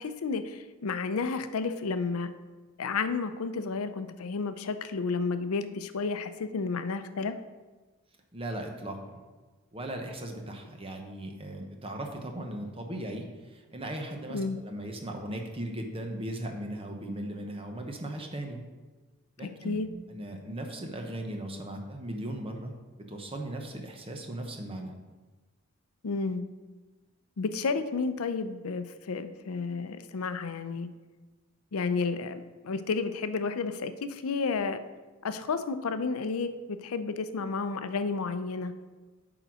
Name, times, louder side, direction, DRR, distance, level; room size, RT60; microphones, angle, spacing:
voice 1, 0.0-2.3 2.8-7.3 14.3-14.6 19.4-19.9 26.0-26.5 27.4-30.9 31.7-34.8 35.2-38.7, left 4 dB, 80° left, 11 dB, 0.5 m, -31 dB
voice 2, 8.3-9.2 9.7-18.6 19.4-19.8 20.1-22.7 23.0-24.9, right 1 dB, 25° right, 3 dB, 0.9 m, -38 dB
9.0 x 4.0 x 6.1 m, 1.3 s
head